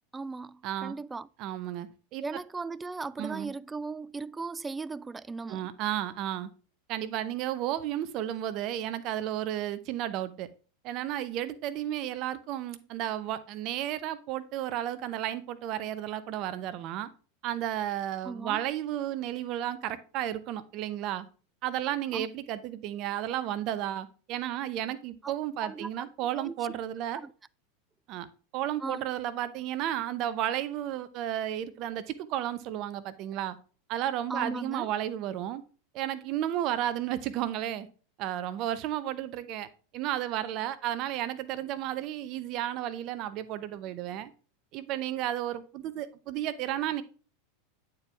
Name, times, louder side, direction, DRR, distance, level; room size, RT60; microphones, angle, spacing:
voice 1, 0.1-1.3 2.2-5.6 18.2-18.6 22.1-22.3 25.6-26.1 26.4-26.5 27.2-27.3 28.8-29.0 34.3-34.9, right 4 dB, 15° right, 0.3 m, -37 dB
voice 2, 0.6-1.0 1.4-2.2 3.2-3.5 5.5-6.5 6.9-10.5 10.8-17.1 17.4-21.3 21.6-27.2 28.1-28.3 28.5-33.6 33.9-35.6 35.9-37.9 38.2-39.7 39.9-44.3 44.7-47.0, right 12 dB, 50° right, 0.7 m, -33 dB
8.6 x 4.6 x 3.3 m
hypercardioid pair, 90°, 0 cm